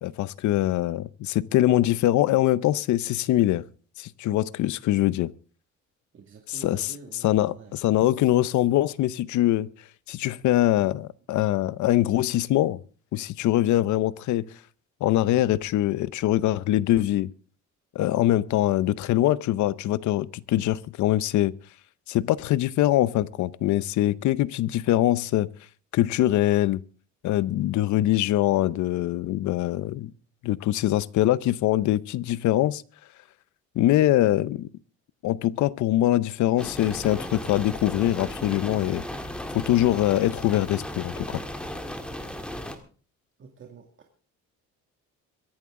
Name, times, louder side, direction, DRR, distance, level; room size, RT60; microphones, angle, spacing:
voice 1, 0.0-3.6 4.0-5.3 6.5-6.9 7.2-9.7 10.1-12.8 13.1-14.4 15.0-17.3 17.9-21.5 22.1-25.5 25.9-26.8 27.2-30.1 30.4-32.8 33.8-34.7 35.2-39.0 39.5-41.4, left 14 dB, 75° left, 0.7 m, -23 dB
voice 2, 6.1-7.7 43.4-43.9, right 5 dB, 40° right, 2.1 m, -47 dB
sound 1, 36.6-42.8, left 1 dB, 5° left, 1.8 m, -35 dB
23.5 x 11.0 x 3.7 m
cardioid pair, 145°, 30 cm